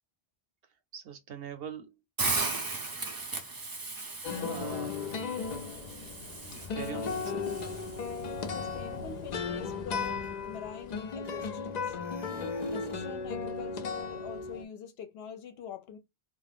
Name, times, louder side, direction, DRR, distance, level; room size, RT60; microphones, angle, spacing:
voice 1, 0.9-1.9 4.4-5.1 6.3-7.5, right 7 dB, 70° right, 0.8 m, -42 dB
Hiss, 2.2-8.3, right 3 dB, 30° right, 0.5 m, -37 dB
sound 1, 4.2-14.6, left 5 dB, 55° left, 0.5 m, -36 dB
voice 2, 8.5-12.0 12.7-16.0, left 7 dB, 75° left, 0.8 m, -44 dB
sound 2, 9.5-9.6 9.9-11.7 12.0-13.1, left 3 dB, 10° right, 1.0 m, -50 dB
2.5 x 2.1 x 3.3 m
omnidirectional pair, 1.0 m